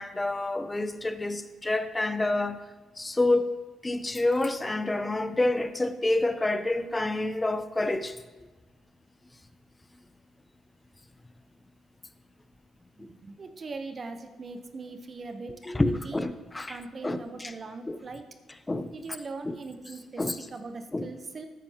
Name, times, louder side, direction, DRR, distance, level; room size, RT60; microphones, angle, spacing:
voice 1, 0.0-2.6 3.0-3.5 3.8-8.2 13.0-13.1 15.6-16.8 17.0-17.5 17.9-18.0 18.7-18.9 19.4-19.5 20.2-20.4 20.9-21.1, left 2 dB, 15° left, 0.6 m, -28 dB
voice 2, 13.0-16.2 16.7-18.2 18.9-20.2 20.5-21.5, right 3 dB, 40° right, 0.8 m, -40 dB
13.0 x 9.2 x 2.9 m
cardioid pair, 90°, 0 cm